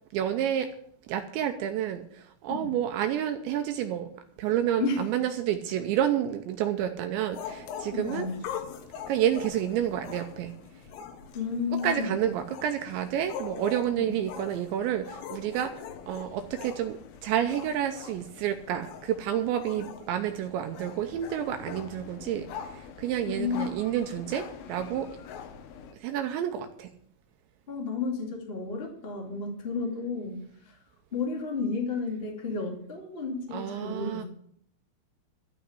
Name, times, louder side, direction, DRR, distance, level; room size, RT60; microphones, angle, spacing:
voice 1, 0.1-0.7 1.1-4.1 4.4-8.3 9.1-10.5 11.8-15.7 16.1-25.1 26.0-26.9 33.5-34.2, right 10 dB, 80° right, 6 dB, 2.6 m, -29 dB
sound 1, 7.3-25.9, left 7 dB, 80° left, 3.8 m, -43 dB
voice 2, 7.9-8.4 11.3-12.2 14.0-14.2 23.3-23.7 27.7-30.4 30.6-30.8 31.1-34.2, left 4 dB, 55° left, 0 dB, 0.6 m, -32 dB
13.0 x 5.8 x 9.5 m, 0.65 s
omnidirectional pair, 6.0 m